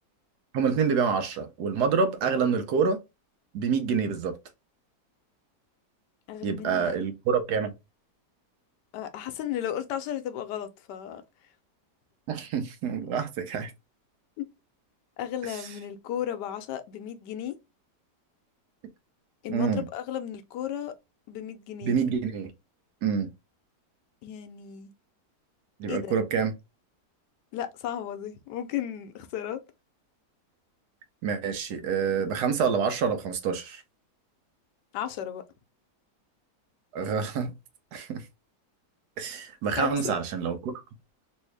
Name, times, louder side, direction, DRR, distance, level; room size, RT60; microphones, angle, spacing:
voice 1, 0.5-3.0 3.5-4.3 6.4-7.7 12.3-13.7 19.5-19.8 21.8-22.5 23.0-23.3 25.8-26.5 31.2-33.8 36.9-37.5 37.9-38.2 39.2-40.8, right 6 dB, 75° right, 1.2 m, -27 dB
voice 2, 6.3-7.0 8.9-11.2 14.4-14.5 15.2-17.5 19.4-20.9 21.3-22.0 24.2-24.9 25.9-26.2 27.5-29.6 34.9-35.4 39.7-40.2, left 10 dB, 85° left, 1.2 m, -34 dB
3.2 x 2.7 x 3.1 m
omnidirectional pair, 1.8 m